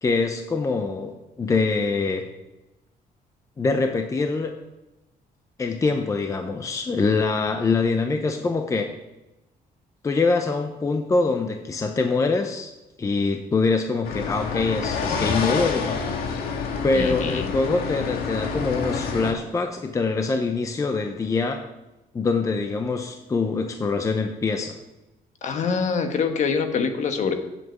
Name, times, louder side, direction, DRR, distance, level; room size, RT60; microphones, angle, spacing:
voice 1, 0.0-2.3 3.6-4.5 5.6-8.9 10.0-12.7 13.0-16.0 16.8-21.6 22.1-24.8, left 4 dB, 20° left, 5 dB, 0.7 m, -24 dB
sound 1, 14.0-19.3, left 5 dB, 85° left, 1.8 m, -28 dB
voice 2, 16.9-17.5 25.4-27.3, left 5 dB, 50° left, 6 dB, 1.4 m, -25 dB
7.8 x 7.8 x 8.1 m, 0.99 s
cardioid pair, 155°, 15 cm